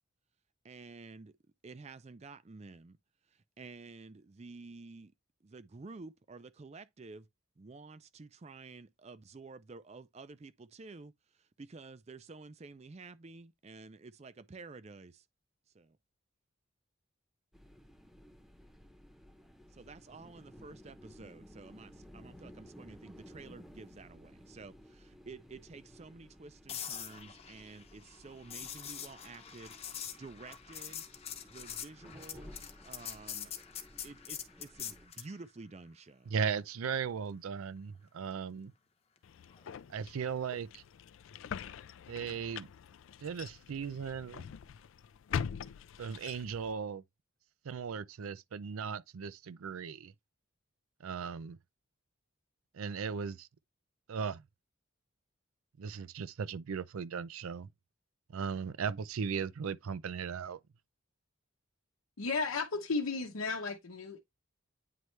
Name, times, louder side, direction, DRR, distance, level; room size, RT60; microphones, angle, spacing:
voice 1, 0.6-1.3 1.6-3.0 3.3-5.1 5.4-7.3 7.6-15.3 15.7-16.0 19.7-31.0 31.4-33.5 34.0-36.3, right 3 dB, 30° right, 0.4 m, -51 dB
sound 1, 17.5-35.1, equal, ahead, 0.8 m, -56 dB
sound 2, 26.7-35.3 39.5-39.8, left 9 dB, 30° left, 0.8 m, -44 dB
voice 2, 36.3-38.7 39.9-40.8 42.1-42.7 43.2-44.5 46.0-47.0 47.6-50.1 51.0-51.6 52.7-53.5 54.1-54.4 55.8-57.7 58.3-60.6, right 6 dB, 90° right, 0.4 m, -37 dB
sound 3, 39.2-46.7, left 7 dB, 70° left, 0.3 m, -43 dB
voice 3, 62.2-64.2, left 4 dB, 85° left, 0.8 m, -34 dB
9.3 x 3.2 x 3.1 m
head